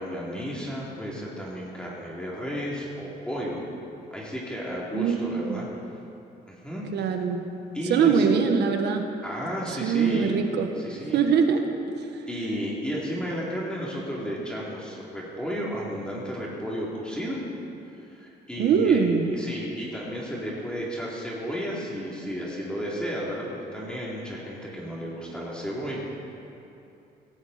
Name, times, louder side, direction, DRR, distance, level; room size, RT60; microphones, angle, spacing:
voice 1, 0.0-3.6 4.1-5.7 6.5-6.9 7.7-8.2 9.2-10.3 10.8-11.2 12.3-17.4 18.0-19.1 19.3-26.0, equal, 5° left, -5 dB, 3.0 m, -33 dB
voice 2, 4.9-5.7 6.9-7.4 7.9-9.0 9.8-10.7 11.1-11.6 18.6-19.3, right 6 dB, 80° right, 5 dB, 1.4 m, -22 dB
17.0 x 14.5 x 4.2 m, 2.8 s
cardioid pair, 110°, 17 cm